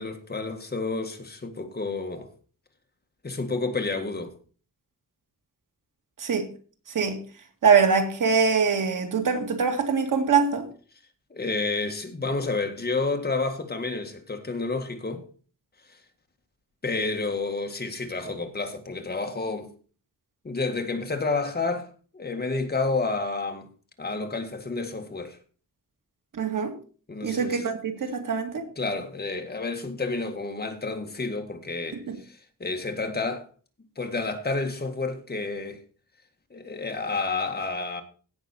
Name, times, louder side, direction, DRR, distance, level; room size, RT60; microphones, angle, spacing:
voice 1, 0.0-2.3 3.2-4.3 11.3-15.3 15.9-16.0 16.8-19.7 20.4-23.7 24.0-25.4 27.1-27.6 28.7-33.4 33.9-35.8 36.5-38.0, left 3 dB, 30° left, 1.8 m, -30 dB
voice 2, 7.6-10.7 26.3-26.7 27.2-28.6 32.1-32.2, right 5 dB, 70° right, 2.3 m, -23 dB
16.5 x 6.2 x 4.3 m
wide cardioid pair, 140°, 33 cm